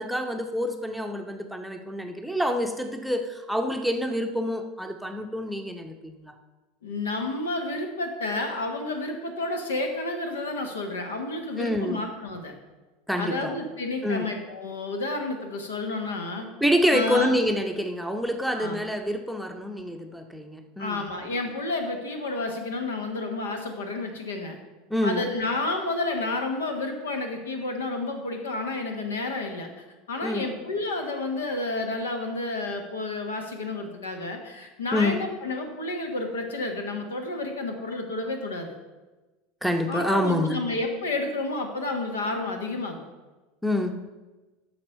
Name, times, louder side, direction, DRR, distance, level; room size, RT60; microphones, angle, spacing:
voice 1, 0.0-6.3 11.6-12.0 13.1-13.5 14.0-14.2 16.6-21.0 24.9-25.2 30.2-30.5 34.9-35.2 39.6-40.6 43.6-44.0, equal, ahead, 4 dB, 0.8 m, -27 dB
voice 2, 6.8-12.5 13.2-16.5 16.9-17.3 18.5-18.9 20.8-24.6 25.0-29.7 30.1-38.8 39.9-43.0, left 2 dB, 70° left, 4 dB, 1.2 m, -30 dB
8.5 x 6.1 x 5.4 m, 1.2 s
figure-of-eight pair, 75°, 0 cm